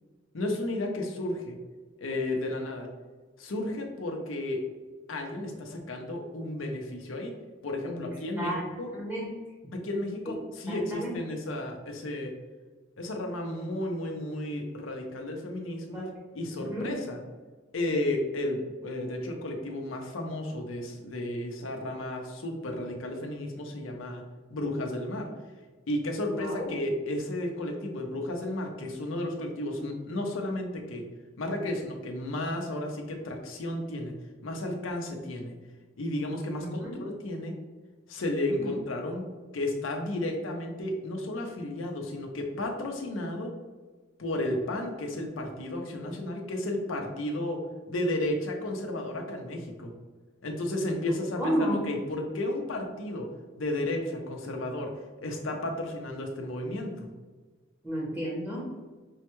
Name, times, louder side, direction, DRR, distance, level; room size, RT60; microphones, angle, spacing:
voice 1, 0.3-1.6 2.0-2.9 3.4-4.6 5.1-7.3 7.6-8.9 9.7-12.3 13.0-16.1 16.3-17.2 17.7-24.2 24.5-25.3 25.9-31.0 31.4-34.1 34.4-35.5 36.0-37.5 38.1-39.2 39.5-43.5 44.2-47.6 47.9-49.9 50.4-53.3 53.6-54.9 55.2-57.1, left 1 dB, 85° left, 3 dB, 0.6 m, -33 dB
voice 2, 8.9-9.3 10.7-11.1 15.9-16.0 16.6-16.9 26.3-26.7 36.6-37.0 38.5-38.7 51.4-51.8 57.8-58.6, equal, 10° right, -5 dB, 0.8 m, -32 dB
5.4 x 2.2 x 3.0 m, 1.3 s
head